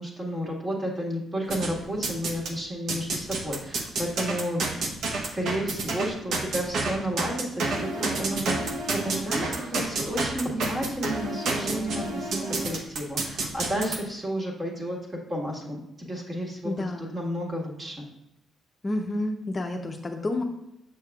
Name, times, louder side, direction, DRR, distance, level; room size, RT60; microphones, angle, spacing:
voice 1, 0.0-4.6 5.3-15.0 15.3-18.0, equal, 30° right, -1 dB, 1.7 m, -32 dB
sound 1, 1.5-2.5 2.9-14.0, right 3 dB, 70° right, 0.9 m, -29 dB
voice 2, 16.6-17.1 18.8-20.4, left 1 dB, 30° left, 2 dB, 0.6 m, -30 dB
6.6 x 6.5 x 2.4 m, 0.87 s
cardioid pair, 90°, 0 cm